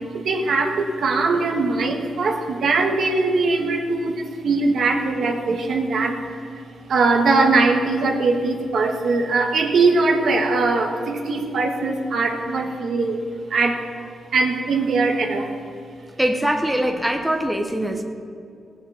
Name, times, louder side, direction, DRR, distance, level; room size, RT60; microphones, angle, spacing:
voice 1, 0.2-6.1 6.9-13.2 13.5-13.8 14.3-15.5, right 3 dB, 65° right, 2 dB, 1.6 m, -21 dB
voice 2, 16.2-18.0, right 1 dB, 5° right, 3 dB, 1.1 m, -22 dB
18.0 x 6.4 x 7.1 m, 2.4 s
cardioid pair, 95°, 0 cm